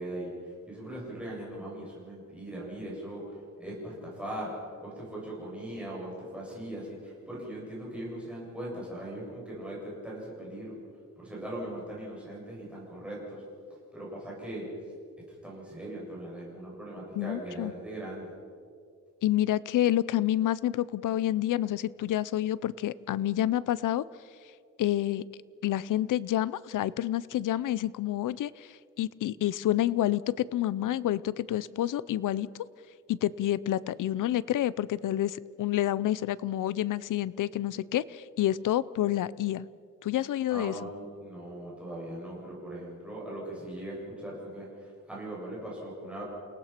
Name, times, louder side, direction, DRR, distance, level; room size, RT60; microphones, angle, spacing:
voice 1, 0.0-4.5 4.8-10.7 11.2-13.4 13.9-14.7 15.3-18.3 40.5-46.2, right 1 dB, 5° right, -6 dB, 7.4 m, -40 dB
voice 2, 17.2-17.7 19.2-24.1 24.8-25.2 25.6-32.5 33.1-39.6 40.0-40.7, left 13 dB, 80° left, 19 dB, 0.6 m, -28 dB
29.0 x 18.0 x 5.9 m, 2.2 s
wide cardioid pair, 155°, 31 cm